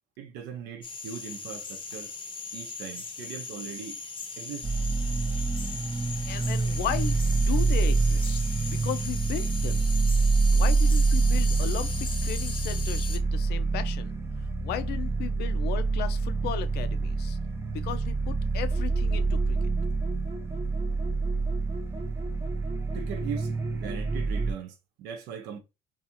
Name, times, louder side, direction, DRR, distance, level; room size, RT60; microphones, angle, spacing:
voice 1, 0.2-2.1 2.5-4.0 4.4-4.7 22.9-25.6, right 7 dB, 90° right, 0.7 m, -40 dB
sound 1, 0.8-13.2, left 4 dB, 30° left, 0.6 m, -38 dB
sound 2, 4.6-24.5, right 3 dB, 15° right, 0.4 m, -26 dB
voice 2, 6.2-8.4 8.7-9.8 10.5-14.2 14.6-17.4 17.7-19.6, left 10 dB, 70° left, 0.4 m, -36 dB
sound 3, 18.7-24.6, left 1 dB, 35° right, 0.8 m, -43 dB
2.7 x 2.4 x 2.6 m
cardioid pair, 110°, 17 cm